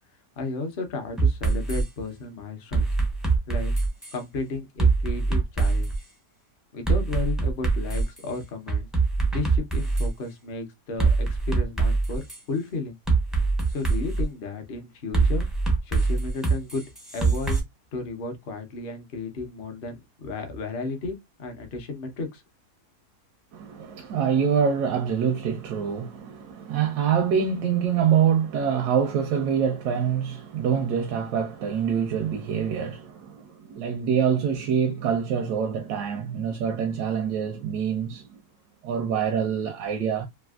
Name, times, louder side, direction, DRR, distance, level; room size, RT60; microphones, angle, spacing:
voice 1, 0.4-2.9 3.5-3.7 4.1-5.9 6.7-8.9 9.3-13.0 13.7-15.5 15.8-16.8 17.1-17.6 17.9-22.4, left 3 dB, 50° left, 0.7 m, -33 dB
sound 1, 1.2-1.8 2.7-4.2 4.8-6.0 6.9-8.2 8.7-10.1 11.0-12.4 13.1-14.2 15.1-17.6, right 4 dB, ahead, 0.4 m, -23 dB
voice 2, 23.5-38.4 38.8-40.3, right 7 dB, 85° right, 1.1 m, -25 dB
3.3 x 2.5 x 2.3 m
omnidirectional pair, 1.7 m